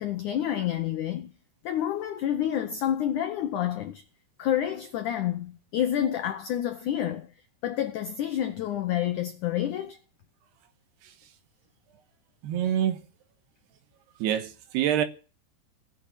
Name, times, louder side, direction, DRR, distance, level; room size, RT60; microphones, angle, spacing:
voice 1, 0.0-1.3 1.6-4.0 4.4-7.3 7.6-10.0, left 11 dB, 85° left, 1.7 m, -28 dB
voice 2, 12.4-13.0 14.2-15.1, right 10 dB, 75° right, 3.2 m, -26 dB
18.5 x 6.9 x 8.8 m
omnidirectional pair, 4.9 m